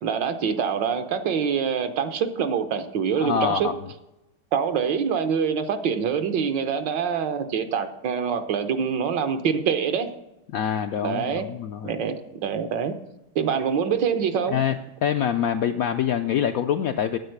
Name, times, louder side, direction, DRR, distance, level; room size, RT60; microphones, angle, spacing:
voice 1, 0.0-3.7 4.5-10.1 11.0-11.4 11.8-12.9 13.3-14.6, right 7 dB, 75° right, 8 dB, 1.6 m, -25 dB
voice 2, 3.2-3.7 10.5-11.9 14.5-14.7 15.0-17.2, left 8 dB, 75° left, 7 dB, 0.8 m, -25 dB
9.0 x 8.8 x 6.5 m, 0.94 s
omnidirectional pair, 2.0 m